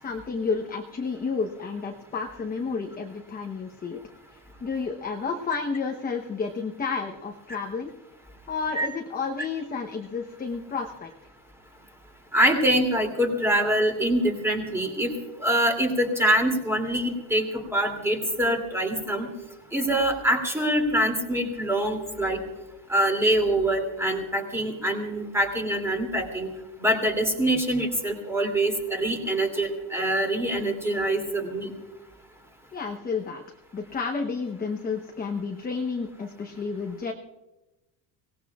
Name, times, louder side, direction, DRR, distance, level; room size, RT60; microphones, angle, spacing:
voice 1, 0.0-4.0 4.3-7.9 8.5-11.1 32.7-33.4 33.7-37.1, left 5 dB, 20° left, 2 dB, 0.9 m, -31 dB
voice 2, 12.3-15.1 15.4-19.3 19.7-22.4 22.9-26.5 26.8-31.7, right 1 dB, 5° right, 3 dB, 2.7 m, -24 dB
24.5 x 18.5 x 2.4 m, 1.0 s
cardioid pair, 160°, 49 cm